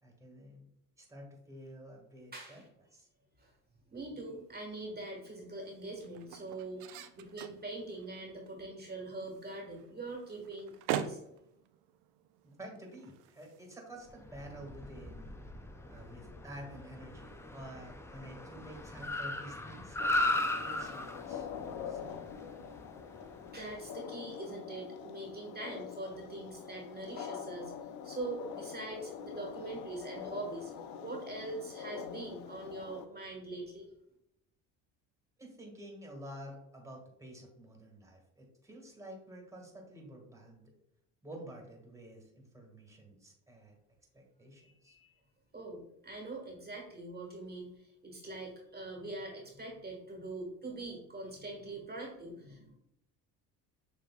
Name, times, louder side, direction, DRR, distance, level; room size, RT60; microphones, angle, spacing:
voice 1, 0.0-0.7 1.0-2.6 2.9-3.1 12.4-15.3 15.9-20.0 20.3-22.2 35.4-40.7 41.2-43.8 44.1-44.9, right 1 dB, 10° right, 0 dB, 1.6 m, -50 dB
voice 2, 2.3-2.7 3.4-3.5 3.9-11.2 23.5-27.7 28.0-30.7 31.0-33.9 44.5-45.1 45.5-52.8, right 2 dB, 25° right, 0 dB, 1.4 m, -43 dB
sound 1, 4.0-14.3, right 10 dB, 85° right, 0.5 m, -45 dB
Car, 14.2-23.7, left 2 dB, 10° left, 0.3 m, -38 dB
sound 2, 20.0-33.1, left 8 dB, 70° left, 0.5 m, -45 dB
6.8 x 3.1 x 2.2 m, 0.81 s
cardioid pair, 90°, 36 cm